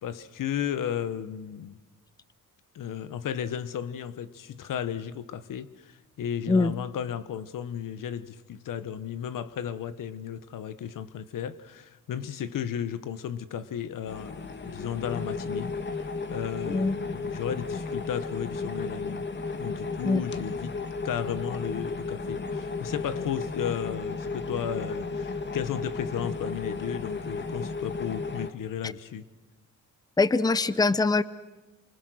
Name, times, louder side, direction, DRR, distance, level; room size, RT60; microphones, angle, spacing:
voice 1, 0.0-1.8 2.7-19.2 19.6-20.8 21.0-29.2, left 9 dB, 70° left, 1.2 m, -34 dB
sound 1, 14.1-28.5, left 4 dB, 35° left, 1.8 m, -34 dB
voice 2, 30.2-31.2, left 3 dB, 10° left, 0.7 m, -23 dB
29.0 x 25.5 x 6.4 m
cardioid pair, 100°, 33 cm